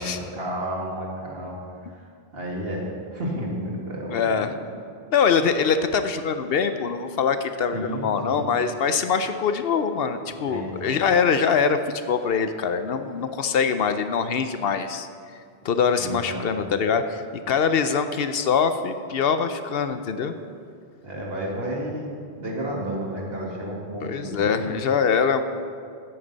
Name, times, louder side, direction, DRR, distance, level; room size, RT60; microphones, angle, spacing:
voice 1, 0.0-1.6 1.9-2.0 2.3-2.9 3.1-4.6 7.7-8.5 10.4-10.9 12.9-13.0 16.0-16.5 21.0-22.1 22.4-24.8, right 1 dB, 65° right, -3 dB, 2.2 m, -31 dB
voice 2, 4.1-4.5 5.1-15.1 15.6-17.2 17.5-20.3 24.0-25.4, left 6 dB, 70° left, 9 dB, 0.8 m, -23 dB
14.0 x 8.7 x 4.0 m, 2.4 s
omnidirectional pair, 1.1 m